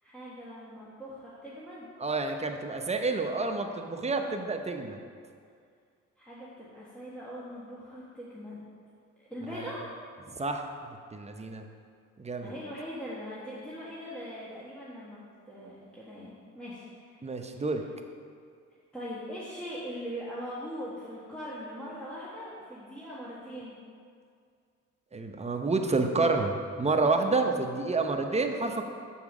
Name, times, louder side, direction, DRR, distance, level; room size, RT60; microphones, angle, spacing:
voice 1, 0.0-1.9 6.2-8.7 9.2-9.9 12.4-17.2 18.9-23.8, equal, 5° left, -10 dB, 1.6 m, -41 dB
voice 2, 2.0-5.0 9.5-9.7 10.4-10.7 11.1-11.6 12.2-12.5 17.2-17.8 25.1-28.8, right 3 dB, 20° right, 4 dB, 0.7 m, -29 dB
7.2 x 4.7 x 6.1 m, 2.2 s
cardioid pair, 90°, 30 cm